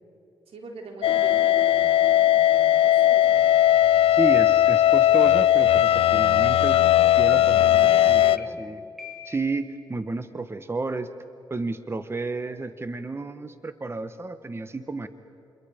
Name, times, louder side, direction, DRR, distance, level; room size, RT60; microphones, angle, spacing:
voice 1, 0.5-3.5 7.3-8.6, right 3 dB, 80° right, 2 dB, 3.9 m, -42 dB
sound 1, 1.0-8.4, left 12 dB, 75° left, 0.5 m, -18 dB
voice 2, 4.1-6.8 7.2-8.8 9.2-11.1 11.5-15.1, right 3 dB, 25° right, 11 dB, 1.1 m, -31 dB
sound 2, 6.7-6.8 7.3-7.7 8.4-8.5 9.0-9.6, left 4 dB, 5° right, 3.6 m, -39 dB
28.5 x 22.5 x 5.1 m, 3.0 s
cardioid pair, 65°, 10 cm